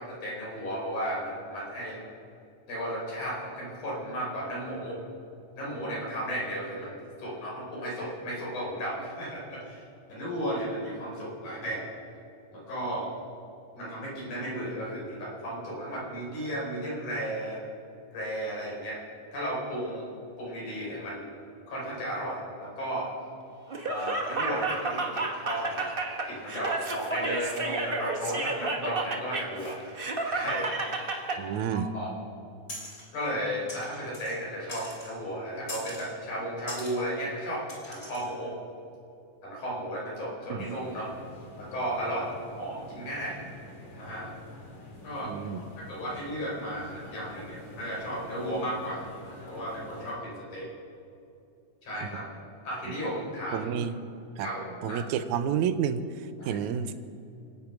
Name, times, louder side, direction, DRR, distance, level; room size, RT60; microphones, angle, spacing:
voice 1, 0.0-2.0 2.7-5.0 5.6-9.8 10.1-11.8 12.5-13.1 13.8-17.6 18.1-19.0 19.3-20.1 20.4-21.3 21.7-23.1 23.8-25.9 26.3-30.0 30.3-30.7 31.7-32.1 33.1-38.5 39.4-41.1 41.6-43.4 44.0-44.3 45.0-45.3 45.8-49.0 49.5-50.7 51.8-52.2 52.6-53.7 54.4-55.0 56.4-56.6, equal, 70° left, -4 dB, 5.8 m, -34 dB
Laughter, 23.7-31.4, right 3 dB, 55° right, 0.6 m, -31 dB
voice 2, 31.4-31.9 40.5-40.7 45.3-45.6 52.0-52.1 53.5-54.0 54.4-54.5 54.8-56.9, right 8 dB, 75° right, 11 dB, 2.1 m, -30 dB
sound 1, 32.7-33.1 33.7-34.4 34.7-35.2 35.7-36.1 36.7-37.0 37.7-38.3, left 1 dB, 25° left, 3.3 m, -42 dB
sound 2, 40.6-50.2, left 1 dB, 40° left, 2.8 m, -47 dB
26.0 x 9.0 x 6.0 m, 2.7 s
omnidirectional pair, 3.6 m